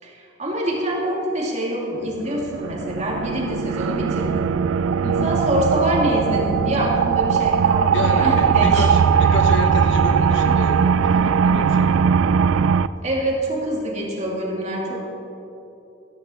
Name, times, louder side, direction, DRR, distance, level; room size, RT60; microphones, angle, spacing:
voice 1, 0.0-4.5 5.2-8.9 13.0-15.1, right 1 dB, 35° right, -2 dB, 2.5 m, -25 dB
sound 1, 2.2-12.9, right 6 dB, 80° right, 0.3 m, -19 dB
voice 2, 5.0-5.3 7.9-11.9, left 2 dB, 65° left, 5 dB, 1.0 m, -29 dB
14.5 x 14.0 x 4.3 m, 3.0 s
head